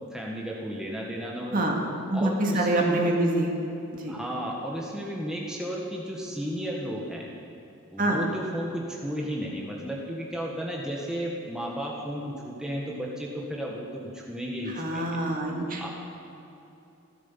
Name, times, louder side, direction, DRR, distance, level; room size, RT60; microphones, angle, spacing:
voice 1, 0.1-1.7 2.1-3.0 4.1-7.3 7.9-15.2 15.8-15.9, equal, 5° right, -3 dB, 1.6 m, -33 dB
voice 2, 2.1-3.6 3.9-4.1 8.0-8.2 14.8-15.9, right 1 dB, 40° right, 0 dB, 2.1 m, -25 dB
15.0 x 12.5 x 7.4 m, 2.9 s
head